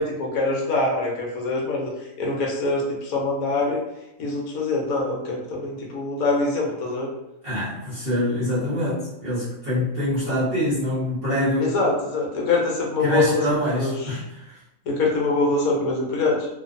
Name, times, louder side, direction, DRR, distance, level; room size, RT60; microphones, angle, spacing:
voice 1, 0.0-1.9 2.2-3.8 4.2-7.1 11.6-13.4 13.8-13.9 14.9-16.5, left 3 dB, 75° left, -1 dB, 1.2 m, -24 dB
voice 2, 7.4-11.8 13.0-14.6, left 1 dB, 45° right, -11 dB, 1.0 m, -25 dB
2.7 x 2.3 x 2.5 m, 0.86 s
omnidirectional pair, 1.6 m